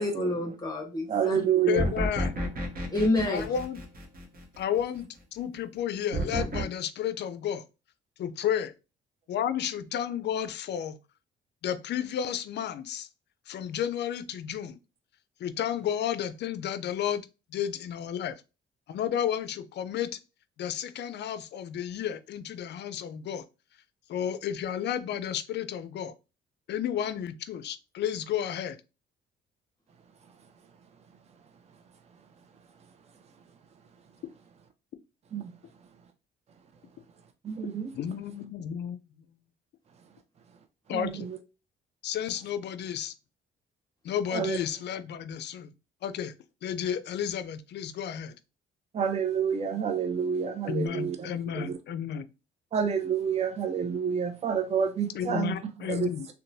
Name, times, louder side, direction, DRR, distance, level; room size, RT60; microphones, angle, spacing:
voice 1, 0.0-1.7 2.9-3.5, left 1 dB, 20° left, 1.1 m, -28 dB
voice 2, 1.1-1.9 35.3-35.4 37.4-37.9 40.9-41.3 44.3-44.6 48.9-51.2 51.5-51.7 52.7-55.5 55.9-56.1, right 7 dB, 35° right, 0.5 m, -28 dB
voice 3, 1.7-2.4 3.3-3.8 4.6-7.6 8.2-8.7 9.3-11.0 11.6-13.1 13.5-14.8 15.4-18.4 18.9-20.2 20.6-23.4 24.1-26.1 26.7-28.8 37.9-39.0 40.9-41.3 42.0-43.1 44.0-45.7 46.0-46.3 46.6-48.3 50.7-52.3 55.1-56.3, left 9 dB, 60° left, 0.4 m, -32 dB
sound 1, 1.8-4.6 6.1-6.6, equal, 50° right, 0.9 m, -31 dB
2.9 x 2.2 x 2.6 m
cardioid pair, 90°, 20 cm